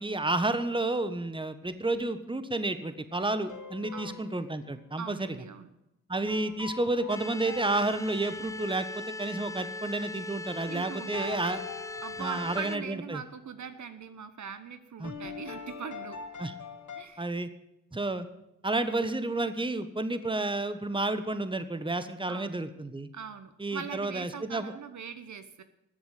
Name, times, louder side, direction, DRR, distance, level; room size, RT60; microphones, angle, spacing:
voice 1, 0.0-5.4 6.1-11.6 12.2-13.2 15.0-15.1 16.4-16.5 17.2-17.5 17.9-18.3 18.6-23.1 23.6-24.7, right 2 dB, 15° right, 11 dB, 1.4 m, -31 dB
sound 1, 3.1-4.6 6.3-8.5 11.1-13.2 15.0-17.0, left 5 dB, 60° left, 2.1 m, -43 dB
voice 2, 5.0-5.7 10.7-11.3 12.0-16.2 16.9-17.3 22.3-22.5 23.1-25.6, right 6 dB, 55° right, 10 dB, 1.1 m, -41 dB
sound 2, 7.1-12.8, left 2 dB, 10° left, 0.6 m, -40 dB
13.5 x 8.1 x 9.2 m, 0.86 s
supercardioid pair, 50°, 34 cm